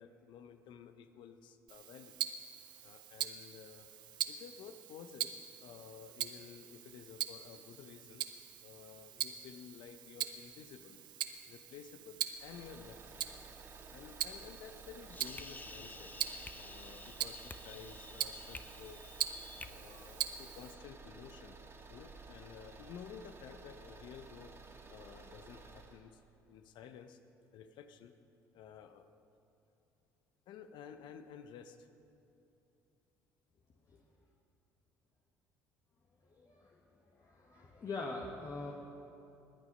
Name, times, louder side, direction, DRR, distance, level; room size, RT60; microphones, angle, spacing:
voice 1, 0.0-2.2 2.8-3.9 4.3-8.2 8.6-11.0 11.5-13.5 13.8-16.1 16.5-19.0 19.6-21.6 21.9-24.5 24.9-26.2 26.5-27.2 27.5-28.1 28.5-29.1 30.5-31.9, left 7 dB, 65° left, 9 dB, 0.8 m, -53 dB
Tick-tock, 1.7-20.7, right 10 dB, 60° right, 0.8 m, -43 dB
sound 1, 12.3-26.0, right 3 dB, 30° right, 2.3 m, -54 dB
sound 2, 14.7-19.7, left 3 dB, 20° left, 0.8 m, -51 dB
voice 2, 36.4-36.8 37.2-38.7, left 3 dB, 40° left, -1 dB, 1.6 m, -43 dB
20.5 x 8.6 x 5.5 m, 2.7 s
hypercardioid pair, 60°, 9 cm